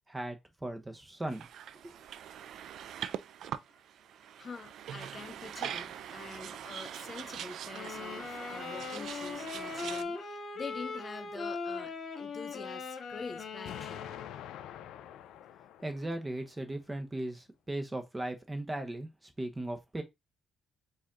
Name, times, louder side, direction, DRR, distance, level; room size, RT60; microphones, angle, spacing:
voice 1, 0.1-1.5 1.8-2.0 15.8-20.0, right 1 dB, 15° right, 1.0 m, -37 dB
sound 1, 1.3-10.0, right 9 dB, 75° right, 0.4 m, -42 dB
voice 2, 4.4-14.1, left 4 dB, 35° left, 0.5 m, -46 dB
sound 2, 7.7-14.5, left 4 dB, 55° left, 1.2 m, -40 dB
Explosion, 13.7-16.6, left 11 dB, 85° left, 0.4 m, -46 dB
5.0 x 2.6 x 3.7 m
cardioid pair, 90°, 0 cm